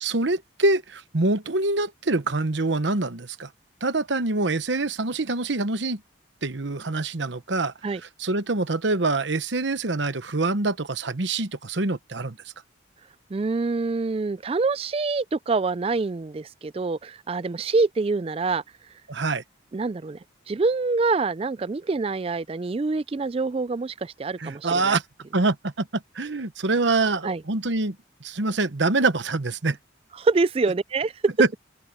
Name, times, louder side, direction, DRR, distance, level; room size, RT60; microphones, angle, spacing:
voice 1, 0.0-3.5 3.8-6.0 6.4-7.7 8.2-12.4 19.1-19.4 24.4-25.0 25.3-28.0 28.2-29.8 31.4-31.5, right 3 dB, 70° right, 1.1 m, -25 dB
voice 2, 13.3-18.6 19.7-20.2 20.5-25.0 27.2-27.4 30.2-31.1, right 3 dB, 30° right, 0.3 m, -26 dB
open air
head